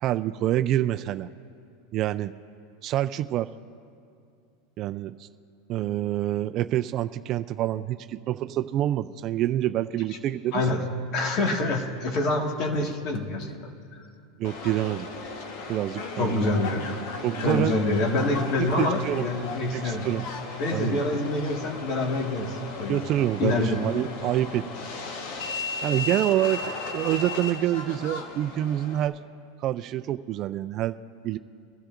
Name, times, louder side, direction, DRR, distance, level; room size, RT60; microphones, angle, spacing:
voice 1, 0.0-1.3 1.9-2.3 2.8-3.5 4.8-5.3 5.7-10.6 14.4-15.1 15.7-16.6 17.2-17.7 18.6-19.3 19.7-20.2 20.7-21.0 22.9-24.6 25.8-29.2 29.6-31.0 31.2-31.4, right 13 dB, 40° right, 11 dB, 0.4 m, -27 dB
voice 2, 11.1-13.6 13.9-14.0 16.2-16.8 17.4-20.0 20.6-23.0 23.4-23.8, left 2 dB, 45° left, 2 dB, 1.8 m, -26 dB
Subway metro underground, 14.4-29.1, left 3 dB, 65° left, 1.2 m, -36 dB
22.5 x 13.5 x 2.6 m, 2.3 s
supercardioid pair, 130°, 0 cm